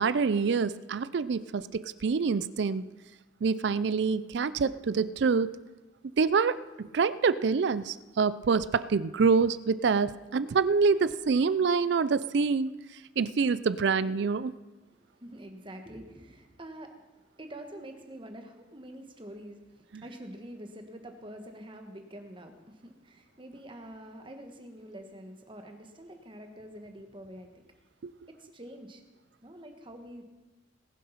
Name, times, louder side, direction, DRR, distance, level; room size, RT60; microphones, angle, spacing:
voice 1, 0.0-2.8 3.4-5.6 6.2-12.7 13.2-14.5 19.9-20.0 28.0-28.1, right 5 dB, 60° right, 17 dB, 0.4 m, -26 dB
voice 2, 14.9-27.8 28.4-29.0 29.4-30.2, right 1 dB, 25° right, 5 dB, 1.4 m, -46 dB
19.5 x 7.5 x 5.7 m, 1.2 s
head